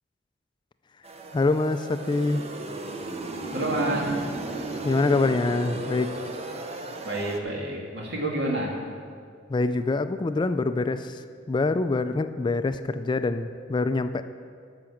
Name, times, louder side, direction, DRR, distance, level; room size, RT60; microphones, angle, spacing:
sound 1, 1.0-7.4, right 2 dB, 35° right, 0.8 m, -35 dB
voice 1, 1.3-2.4 4.8-6.1 9.5-14.2, left 3 dB, 25° left, 11 dB, 0.3 m, -25 dB
voice 2, 3.5-4.2 7.0-8.8, right 1 dB, 65° right, -2 dB, 2.4 m, -28 dB
12.5 x 5.9 x 7.2 m, 2.1 s
head